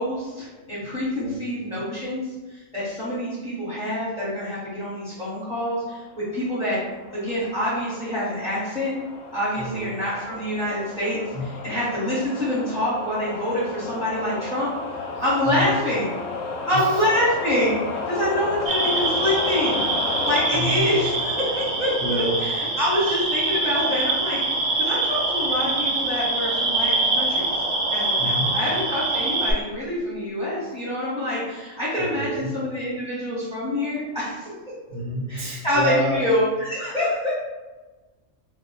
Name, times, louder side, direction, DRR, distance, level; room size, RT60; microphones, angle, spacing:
voice 1, 0.0-2.2 2.5-6.8 7.1-8.9 9.3-14.7 15.2-16.1 16.7-19.8 20.2-24.4 24.8-27.6 27.9-34.6 35.3-37.3, left 1 dB, 5° right, -12 dB, 1.0 m, -26 dB
sound 1, 6.2-22.7, left 4 dB, 75° left, 1.0 m, -33 dB
voice 2, 11.3-11.7 15.5-15.7 16.7-17.0 20.5-20.8 22.0-22.4 28.2-28.5 32.0-32.5 34.9-36.2, equal, 85° right, -2 dB, 1.2 m, -29 dB
sound 2, 18.7-29.5, right 2 dB, 60° right, 0.8 m, -24 dB
2.5 x 2.3 x 4.0 m, 1.2 s
omnidirectional pair, 1.5 m